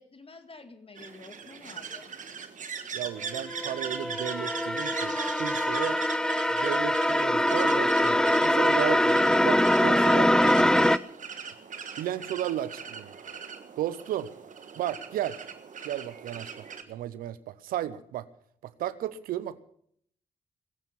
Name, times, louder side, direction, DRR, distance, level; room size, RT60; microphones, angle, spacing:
voice 1, 0.0-2.1, left 3 dB, 40° left, 9 dB, 2.2 m, -49 dB
sound 1, 1.0-16.8, right 6 dB, 60° right, 1.5 m, -40 dB
voice 2, 2.9-6.0 6.6-9.2 9.4-10.3 12.0-13.1 13.8-14.3 14.8-15.4 15.8-18.3 18.6-19.6, right 12 dB, 85° right, 16 dB, 0.7 m, -34 dB
sound 2, 3.3-11.0, left 1 dB, 5° left, 0.6 m, -23 dB
20.0 x 8.4 x 7.2 m, 0.65 s
supercardioid pair, 45°, 14 cm